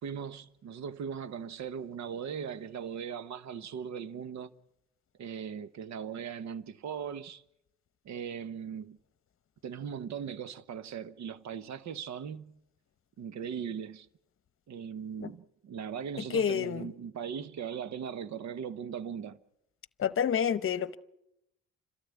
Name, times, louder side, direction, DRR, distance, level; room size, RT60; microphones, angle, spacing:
voice 1, 0.0-4.5 5.2-7.4 8.0-9.0 9.6-12.6 13.2-14.1 14.7-19.4, right 7 dB, 65° right, 1.0 m, -39 dB
voice 2, 16.3-16.9 20.0-21.0, left 7 dB, 45° left, 0.9 m, -28 dB
29.5 x 13.0 x 8.3 m
cardioid pair, 90°, 30 cm